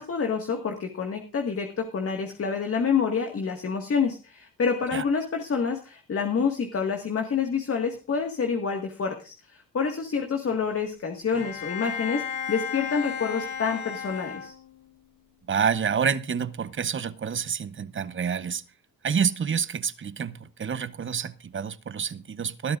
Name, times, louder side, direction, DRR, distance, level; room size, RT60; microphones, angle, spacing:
voice 1, 0.0-14.5, left 6 dB, 40° left, 1.8 m, -28 dB
Bowed string instrument, 11.3-15.0, left 7 dB, 80° left, 6.0 m, -34 dB
voice 2, 15.5-18.6 19.0-22.8, right 7 dB, 35° right, 0.8 m, -28 dB
20.0 x 12.0 x 2.5 m
cardioid pair, 90°, 36 cm